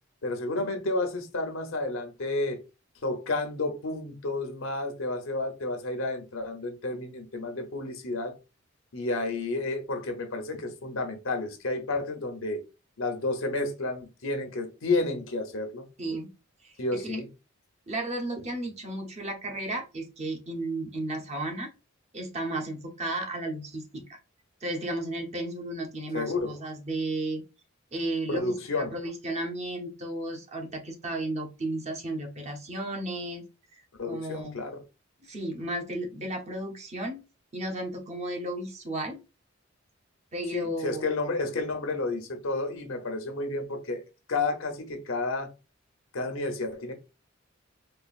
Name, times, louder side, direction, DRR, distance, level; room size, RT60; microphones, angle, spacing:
voice 1, 0.2-2.6 3.0-8.4 8.9-12.6 13.0-15.9 16.8-17.3 26.1-26.6 28.3-28.9 34.0-34.8 40.5-44.0 44.3-45.5 46.1-46.9, left 2 dB, 80° left, 0.9 m, -31 dB
voice 2, 16.0-16.3 16.6-16.7 17.0-17.2 17.9-21.7 22.1-24.2 24.6-27.4 27.9-33.4 33.7-33.8 34.1-34.6 35.2-37.2 37.5-39.2 40.3-41.0, right 1 dB, 35° right, 0.8 m, -34 dB
4.3 x 2.4 x 2.5 m
head